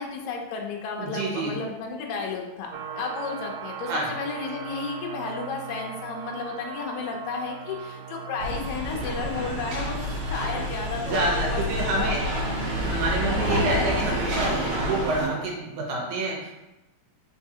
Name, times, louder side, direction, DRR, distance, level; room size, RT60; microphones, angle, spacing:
voice 1, 0.0-12.2 13.4-13.9, left 4 dB, 80° left, 0 dB, 1.6 m, -33 dB
voice 2, 1.0-1.5 3.8-4.1 11.0-12.2 12.7-16.5, right 2 dB, 70° right, -1 dB, 2.0 m, -28 dB
sound 1, 2.7-15.5, right 7 dB, 90° right, 2.3 m, -38 dB
sound 2, 8.4-15.3, left 1 dB, 55° right, 1.9 m, -29 dB
4.5 x 4.0 x 2.7 m, 0.99 s
omnidirectional pair, 4.0 m